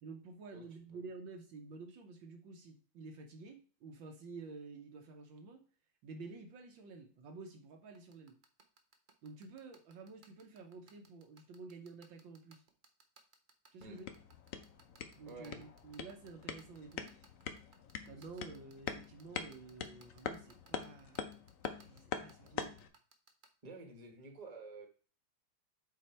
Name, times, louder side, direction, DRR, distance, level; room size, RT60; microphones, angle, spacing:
voice 1, 0.0-5.6 6.0-8.3 9.2-12.6 13.7-14.1 15.2-17.1 18.0-21.4 21.8-22.7, right 4 dB, 70° right, 4 dB, 1.6 m, -51 dB
voice 2, 0.5-1.0 13.8-14.0 15.3-15.6 18.2-18.3 23.6-24.9, right 2 dB, 20° right, 4 dB, 1.3 m, -51 dB
sound 1, 7.9-23.5, right 4 dB, 50° right, 0.6 m, -61 dB
sound 2, 13.8-22.9, left 7 dB, 65° left, 0.8 m, -45 dB
7.7 x 4.3 x 4.3 m, 0.38 s
omnidirectional pair, 2.3 m